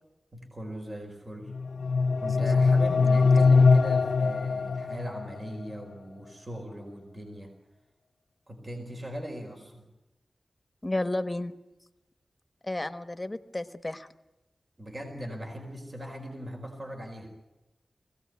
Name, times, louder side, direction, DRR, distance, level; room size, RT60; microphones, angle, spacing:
voice 1, 0.3-1.5 2.2-7.5 8.5-9.8 14.8-17.3, equal, 40° right, 3 dB, 4.6 m, -39 dB
sound 1, 1.5-5.5, left 4 dB, 85° left, 0.7 m, -22 dB
voice 2, 10.8-11.5 12.6-14.1, left 1 dB, 20° left, 10 dB, 1.2 m, -32 dB
22.5 x 17.0 x 9.5 m, 1.0 s
wide cardioid pair, 70°, 0 cm